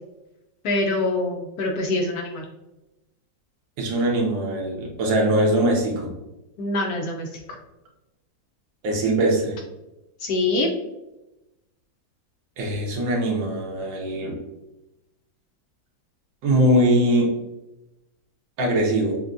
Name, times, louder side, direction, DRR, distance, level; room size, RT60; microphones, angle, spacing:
voice 1, 0.6-2.4 6.6-7.3 10.2-10.7, left 2 dB, 70° left, 1 dB, 0.9 m, -24 dB
voice 2, 3.8-6.1 8.8-9.6 12.6-14.4 16.4-17.3 18.6-19.1, right 1 dB, 85° right, 0 dB, 1.7 m, -21 dB
6.7 x 2.2 x 2.5 m, 0.98 s
omnidirectional pair, 2.0 m